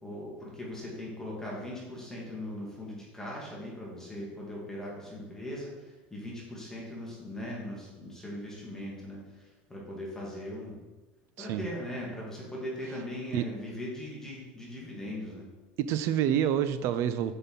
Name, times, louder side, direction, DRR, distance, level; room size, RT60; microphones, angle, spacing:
voice 1, 0.0-10.8 11.4-15.5, left 1 dB, 10° left, -4 dB, 2.1 m, -39 dB
voice 2, 15.8-17.4, right 10 dB, 55° right, 12 dB, 0.5 m, -28 dB
5.9 x 5.4 x 4.1 m, 1.2 s
supercardioid pair, 100°, 6 cm